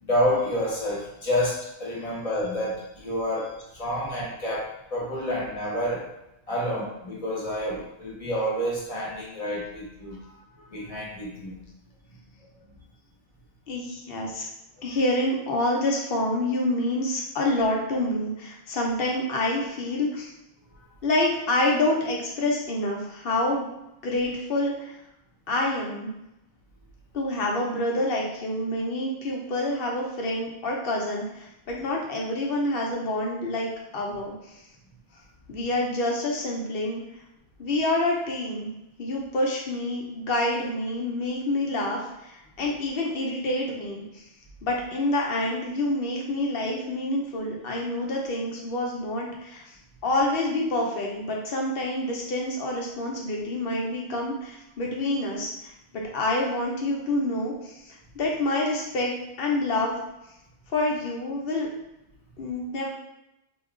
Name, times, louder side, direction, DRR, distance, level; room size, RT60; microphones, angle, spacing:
voice 1, 0.0-6.1 6.5-11.6, equal, 35° left, -5 dB, 1.0 m, -29 dB
voice 2, 13.7-14.4 14.8-20.3 21.0-23.7 24.0-25.0 25.5-26.1 27.1-34.6 35.5-37.0 37.6-38.7 39.0-44.2 44.6-49.6 50.0-60.0 60.7-61.7 62.4-62.9, left 1 dB, 65° left, -2 dB, 0.9 m, -27 dB
2.8 x 2.3 x 3.6 m, 0.88 s
omnidirectional pair, 1.0 m